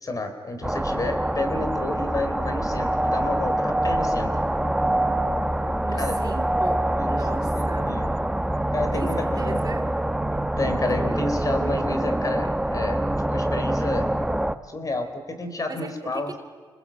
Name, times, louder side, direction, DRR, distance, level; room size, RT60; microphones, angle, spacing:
voice 1, 0.0-4.4 5.9-6.2 7.0-8.1 8.7-9.6 10.6-13.0 13.3-14.1 14.6-16.3, left 2 dB, 40° left, 8 dB, 3.6 m, -30 dB
sound 1, 0.6-14.6, right 1 dB, 5° right, 1.1 m, -25 dB
voice 2, 5.8-8.0 8.9-9.9 10.9-11.0 15.7-16.4, right 4 dB, 45° right, 5 dB, 2.9 m, -37 dB
26.0 x 20.5 x 8.9 m, 1.5 s
cardioid pair, 75°, 9 cm